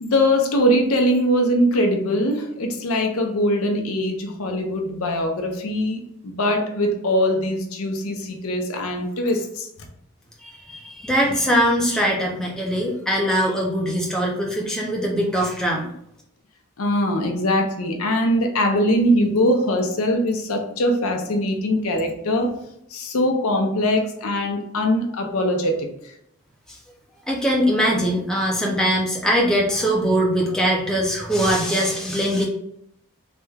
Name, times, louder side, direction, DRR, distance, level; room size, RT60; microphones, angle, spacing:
voice 1, 0.0-9.7 16.8-22.5 22.9-25.9, equal, 75° left, 3 dB, 0.6 m, -22 dB
voice 2, 10.4-15.9 26.7-26.8 27.3-32.5, equal, 5° left, -2 dB, 0.4 m, -21 dB
3.3 x 2.1 x 3.3 m, 0.74 s
head